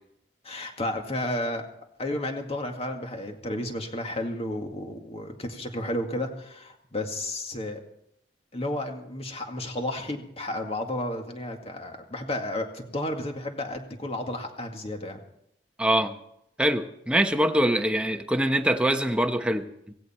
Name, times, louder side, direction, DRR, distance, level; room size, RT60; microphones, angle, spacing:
voice 1, 0.4-1.7 2.0-7.8 8.5-15.2, left 1 dB, 35° left, 4 dB, 2.1 m, -32 dB
voice 2, 15.8-16.2 16.6-19.9, right 1 dB, 5° right, 6 dB, 1.0 m, -24 dB
16.5 x 16.5 x 4.4 m, 0.74 s
head